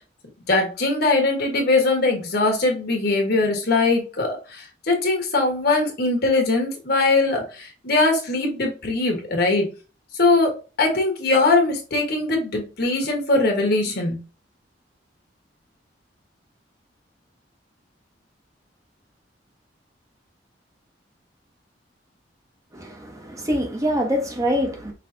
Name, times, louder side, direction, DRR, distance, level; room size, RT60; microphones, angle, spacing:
voice 1, 0.5-9.7 10.2-14.2, left 3 dB, 60° left, 1.3 m, -21 dB
voice 2, 22.7-24.9, equal, 20° right, 0.9 m, -25 dB
5.6 x 3.2 x 2.7 m
head